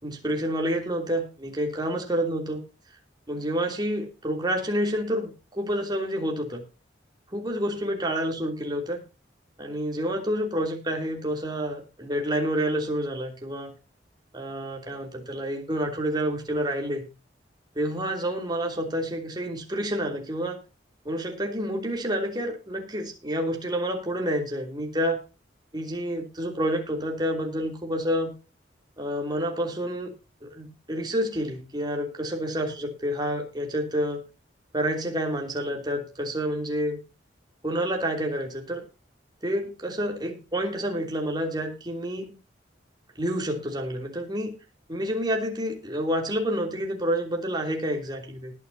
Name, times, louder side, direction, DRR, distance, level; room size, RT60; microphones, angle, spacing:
voice 1, 0.0-2.6 3.3-6.6 7.3-9.0 9.6-13.7 14.3-17.1 17.7-20.6 21.0-25.2 25.7-28.3 29.0-30.1 30.4-34.2 34.7-37.0 37.6-38.8 39.4-42.4 43.2-44.5 44.9-48.5, equal, 25° right, 2 dB, 3.1 m, -29 dB
19.5 x 9.4 x 2.8 m, 0.30 s
head